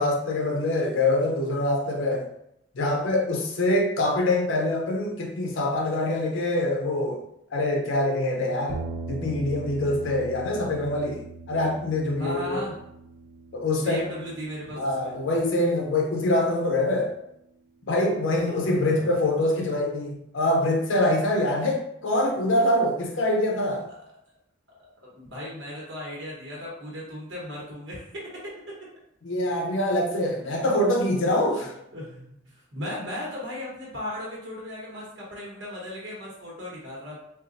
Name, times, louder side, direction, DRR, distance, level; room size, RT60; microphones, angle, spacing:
voice 1, 0.0-2.2 2.8-7.2 7.5-8.8 9.1-12.6 13.5-14.0 14.8-17.1 17.9-23.9 29.2-31.7, left 1 dB, 75° left, 1 dB, 0.5 m, -24 dB
sound 1, 8.7-17.0, right 3 dB, 40° right, 0.3 m, -41 dB
voice 2, 12.2-12.8 13.8-15.1 18.3-19.1 23.9-24.0 24.7-24.8 25.1-28.8 30.1-30.2 31.9-37.2, left 1 dB, 70° right, -4 dB, 1.1 m, -36 dB
3.9 x 2.3 x 2.5 m, 0.78 s
head